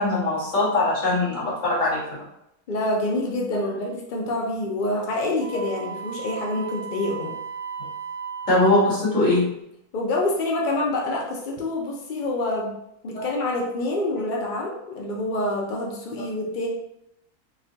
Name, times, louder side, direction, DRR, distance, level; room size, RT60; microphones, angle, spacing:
voice 1, 0.0-2.0 8.5-9.5 13.1-13.3, left 2 dB, 55° left, -9 dB, 2.0 m, -21 dB
voice 2, 2.7-7.3 9.9-12.7 13.0-16.7, left 2 dB, 75° left, -2 dB, 0.4 m, -27 dB
Wind instrument woodwind instrument, 5.4-9.0, right 6 dB, 60° right, 1.4 m, -35 dB
4.2 x 2.2 x 2.7 m, 0.81 s
omnidirectional pair, 1.6 m